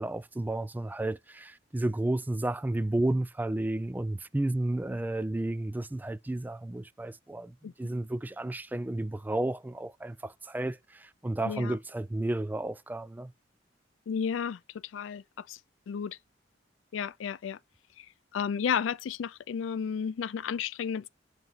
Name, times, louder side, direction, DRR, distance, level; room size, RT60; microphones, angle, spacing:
voice 1, 0.0-13.3, right 1 dB, 10° right, 0.3 m, -32 dB
voice 2, 11.4-11.7 14.1-15.6 15.9-16.2 16.9-17.6 18.0-18.1 18.3-21.1, left 7 dB, 85° left, 0.4 m, -33 dB
7.8 x 3.1 x 5.4 m
head